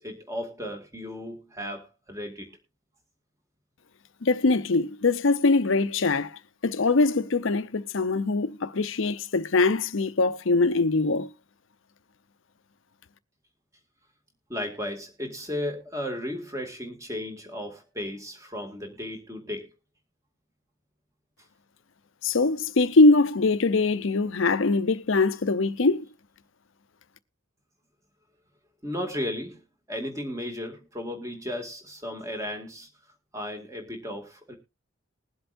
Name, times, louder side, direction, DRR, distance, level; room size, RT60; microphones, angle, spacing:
voice 1, 0.0-2.5 14.5-19.7 28.8-32.9 33.3-34.5, left 1 dB, 15° right, 2.1 m, -35 dB
voice 2, 4.2-11.3 22.2-26.1, left 3 dB, 65° left, 0.7 m, -22 dB
21.0 x 7.8 x 2.6 m
head